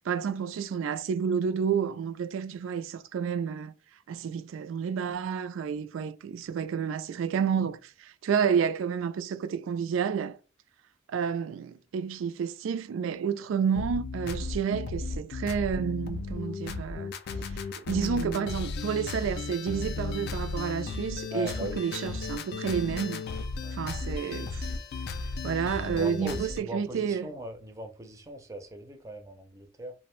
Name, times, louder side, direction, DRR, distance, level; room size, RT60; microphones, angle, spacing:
voice 1, 0.1-3.7 4.1-10.4 11.1-17.1 17.5-23.2 23.7-24.7 25.4-27.3, right 7 dB, 85° right, 0.3 m, -30 dB
sound 1, 13.7-26.6, left 3 dB, 55° left, 0.3 m, -35 dB
voice 2, 21.3-21.8 23.6-23.8 25.8-29.9, equal, 15° right, 0.5 m, -39 dB
2.5 x 2.0 x 3.0 m
head